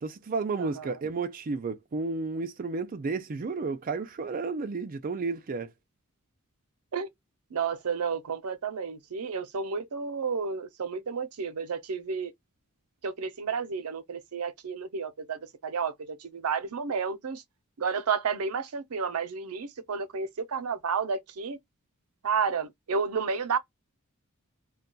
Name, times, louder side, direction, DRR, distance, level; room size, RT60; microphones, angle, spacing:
voice 1, 0.0-5.7, right 4 dB, 40° right, 0.4 m, -32 dB
voice 2, 0.6-0.9 6.9-7.1 7.5-12.3 13.0-17.4 17.8-21.6 22.2-23.6, right 5 dB, 85° right, 0.6 m, -31 dB
2.2 x 2.2 x 3.8 m
head